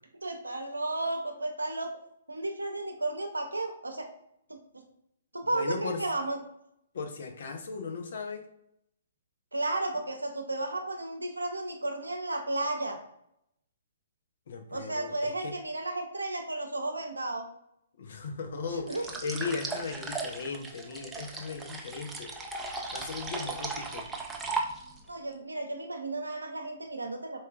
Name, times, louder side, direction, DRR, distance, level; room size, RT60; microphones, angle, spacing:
voice 1, 0.2-1.9 2.3-4.1 4.5-4.8 5.3-6.4 9.5-13.0 14.7-17.5 18.9-19.1 25.1-27.4, right 2 dB, 90° right, 4 dB, 0.6 m, -33 dB
voice 2, 5.5-6.0 6.9-8.5 14.5-15.5 18.0-22.5 22.7-24.1, left 4 dB, 60° left, 5 dB, 0.6 m, -37 dB
sound 1, 18.9-25.1, right 3 dB, 10° right, 0.4 m, -37 dB
4.2 x 2.3 x 2.3 m, 0.77 s
figure-of-eight pair, 125°, 0 cm